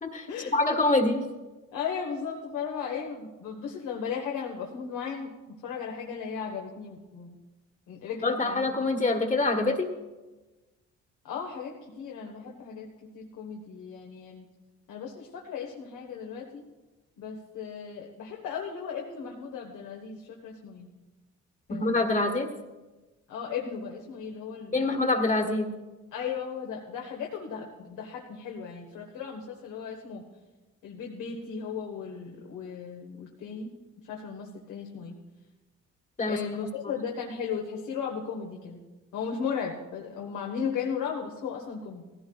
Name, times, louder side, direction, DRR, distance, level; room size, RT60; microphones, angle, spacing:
voice 1, 0.0-1.2 8.2-9.9 21.7-22.5 24.7-25.7 36.2-36.4 36.8-36.9, left 2 dB, 25° left, 3 dB, 1.5 m, -25 dB
voice 2, 1.7-5.3 5.6-7.3 7.9-9.0 11.2-14.4 14.9-16.6 17.2-20.9 21.7-22.1 23.3-24.9 26.1-30.2 30.8-33.7 34.0-35.2 36.3-38.8 39.1-42.0, left 6 dB, 90° left, 0 dB, 1.5 m, -36 dB
17.0 x 15.5 x 2.4 m, 1.2 s
cardioid pair, 90°, 30 cm